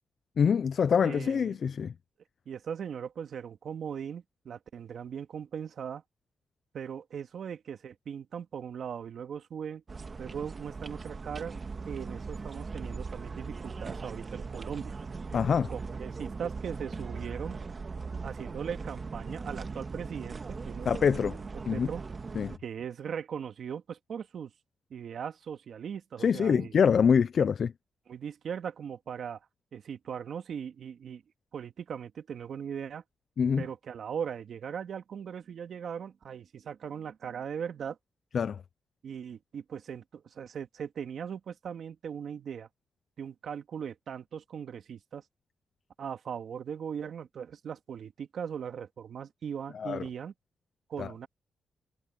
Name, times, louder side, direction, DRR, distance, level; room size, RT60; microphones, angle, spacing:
voice 1, 0.4-1.9 15.3-15.7 20.9-21.4 21.7-21.9 22.3-22.6 26.2-27.7 33.4-33.6 38.3-38.6 49.7-50.0 51.0-51.1, left 7 dB, 65° left, 0.6 m, -25 dB
voice 2, 1.0-1.6 2.5-6.0 6.7-9.8 10.2-11.6 11.9-14.9 15.7-17.6 18.2-21.1 21.7-22.0 22.6-24.5 24.9-26.7 28.1-29.4 29.7-31.2 31.5-33.0 33.6-38.0 39.0-42.7 43.2-45.2 46.0-50.3 50.9-51.3, right 7 dB, 70° right, 2.2 m, -39 dB
sound 1, 9.9-22.6, right 4 dB, 40° right, 1.9 m, -39 dB
cardioid pair, 70°, 0 cm